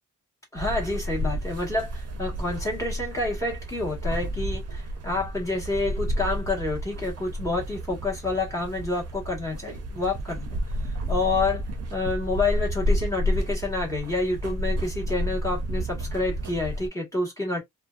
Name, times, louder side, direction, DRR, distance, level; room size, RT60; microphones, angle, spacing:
voice 1, 0.5-10.5 10.8-11.6 11.9-17.6, left 2 dB, 10° left, 1.1 m, -28 dB
sound 1, 0.6-16.9, equal, 50° right, 0.5 m, -31 dB
2.5 x 2.1 x 2.3 m
wide cardioid pair, 165°, 32 cm